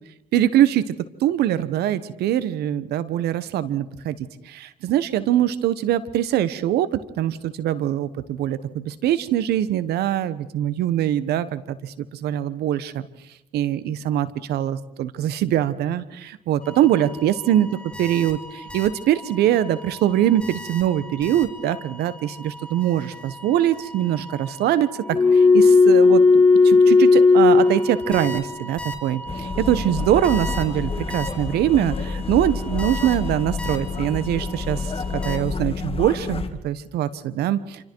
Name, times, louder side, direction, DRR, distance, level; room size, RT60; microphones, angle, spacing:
voice 1, 0.3-0.9 1.2-4.2 4.5-11.9 12.2-13.1 13.5-37.8, right 11 dB, 75° right, 15 dB, 1.2 m, -23 dB
sound 1, 16.7-17.2 17.5-18.9 19.2-19.5 19.8-21.9 22.4-31.3 32.8-33.8 34.1-34.2 35.2-35.4, left 4 dB, 5° left, 3.2 m, -20 dB
sound 2, 29.3-36.5, left 4 dB, 35° left, 2.3 m, -29 dB
27.5 x 26.0 x 4.7 m, 0.92 s
supercardioid pair, 65°, 17 cm